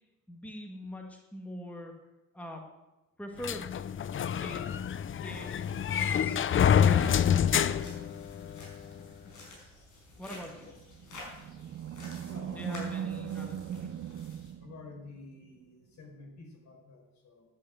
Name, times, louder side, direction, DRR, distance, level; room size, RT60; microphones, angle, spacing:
voice 1, 0.3-1.9 2.3-2.6 3.2-3.8 4.4-4.8 5.2-8.1 10.2-10.7 12.5-13.9, left 1 dB, 5° left, 2 dB, 1.8 m, -43 dB
sound 1, 3.4-8.7, left 8 dB, 40° left, 0.5 m, -27 dB
sound 2, 5.3-14.5, left 2 dB, 90° left, 5.2 m, -51 dB
Animal, 10.8-15.4, right 10 dB, 45° right, 0.5 m, -39 dB
voice 2, 12.3-12.9 14.6-17.4, left 3 dB, 65° left, 1 dB, 4.4 m, -48 dB
10.5 x 8.7 x 7.9 m, 1.0 s
cardioid pair, 90°, 30 cm